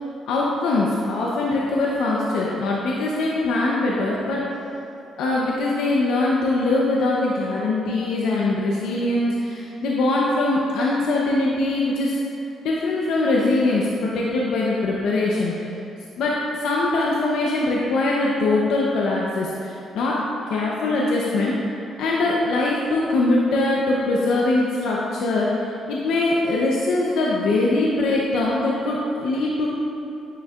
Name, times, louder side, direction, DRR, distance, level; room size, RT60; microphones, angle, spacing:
voice 1, 0.3-4.4 5.2-12.2 12.6-15.7 16.2-20.2 20.5-21.7 22.0-29.7, left 2 dB, 85° left, -4 dB, 0.7 m, -22 dB
9.6 x 6.5 x 2.4 m, 2.8 s
cardioid pair, 90°, 0 cm